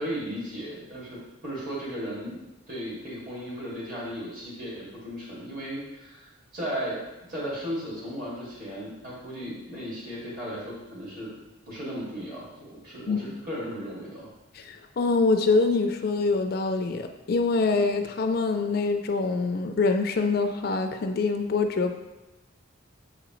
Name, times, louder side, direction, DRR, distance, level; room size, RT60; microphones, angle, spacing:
voice 1, 0.0-2.4 2.7-7.0 7.3-11.3 11.7-14.3, equal, 40° right, -6 dB, 2.1 m, -35 dB
voice 2, 14.5-21.9, left 3 dB, 45° left, 6 dB, 0.4 m, -25 dB
7.4 x 4.9 x 3.0 m, 1.0 s
head